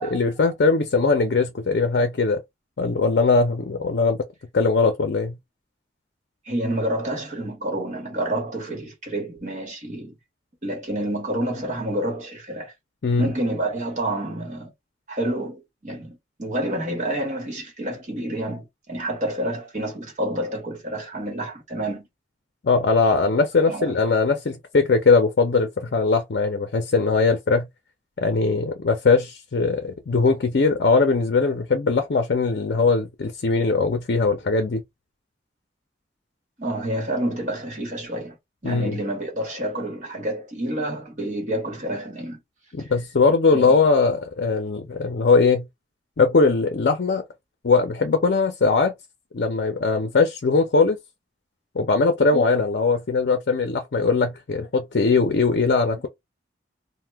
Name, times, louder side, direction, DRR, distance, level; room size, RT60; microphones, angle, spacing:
voice 1, 0.0-2.4 2.8-4.3 4.5-5.4 13.0-13.3 22.6-27.7 28.2-34.8 38.6-39.0 42.7-45.7 46.2-47.2 47.6-48.9 49.3-51.0 51.7-56.1, left 4 dB, 65° left, 0.5 m, -20 dB
voice 2, 6.4-10.1 10.6-12.7 13.2-14.7 15.1-22.1 23.6-24.0 36.6-38.4 38.6-42.4 42.8-42.9 43.5-43.7, right 1 dB, 40° right, 1.1 m, -28 dB
2.8 x 2.1 x 3.3 m
head